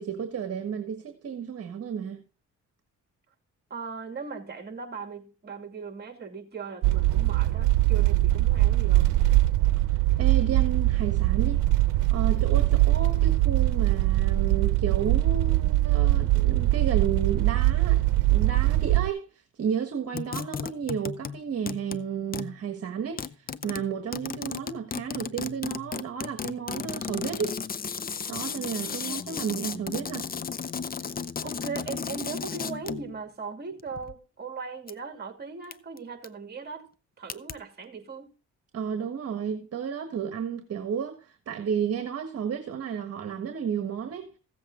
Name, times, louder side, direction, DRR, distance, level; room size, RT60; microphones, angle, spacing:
voice 1, 0.0-2.2 9.9-11.6 12.1-18.0 18.3-19.3 19.6-27.6 28.3-30.3 38.7-44.3, right 7 dB, 55° right, 1.5 m, -32 dB
voice 2, 3.7-9.1 31.4-36.9 37.2-38.3, right 5 dB, 35° right, 2.6 m, -38 dB
sound 1, 6.8-19.1, right 16 dB, 85° right, 0.7 m, -22 dB
sound 2, 20.1-21.4 21.7-22.1 22.3-22.6 23.2-33.1 33.8-34.1 34.9-35.0 35.7-36.0 36.2-36.3 37.3-37.5, left 6 dB, 30° left, 0.6 m, -34 dB
15.5 x 7.8 x 3.8 m
cardioid pair, 100°, 30 cm